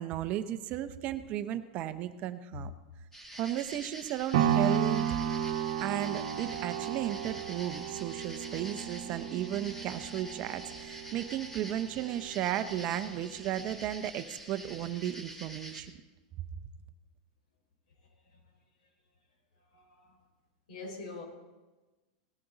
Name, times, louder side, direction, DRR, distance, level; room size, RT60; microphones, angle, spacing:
voice 1, 0.0-2.7 3.4-5.0 5.8-15.9 16.4-16.5, right 12 dB, 35° right, 11 dB, 0.7 m, -35 dB
sound 1, 3.1-15.8, right 1 dB, 5° left, 1.6 m, -47 dB
sound 2, 4.3-12.4 12.9-13.0, right 8 dB, 70° right, 1.0 m, -33 dB
voice 2, 19.7-20.1 20.7-21.2, left 3 dB, 90° left, 2 dB, 4.6 m, -44 dB
18.0 x 9.2 x 4.0 m, 1.2 s
supercardioid pair, 155°, 4 cm